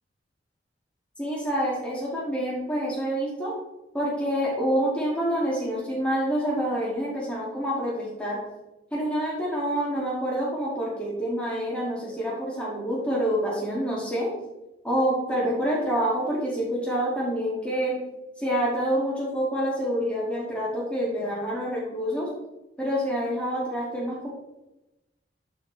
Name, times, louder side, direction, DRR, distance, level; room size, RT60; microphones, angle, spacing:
voice 1, 1.2-3.5 3.9-8.4 8.9-14.3 14.8-18.0 18.4-22.3 22.8-24.3, equal, 5° left, -6 dB, 1.8 m, -27 dB
11.0 x 4.5 x 3.1 m, 0.97 s
head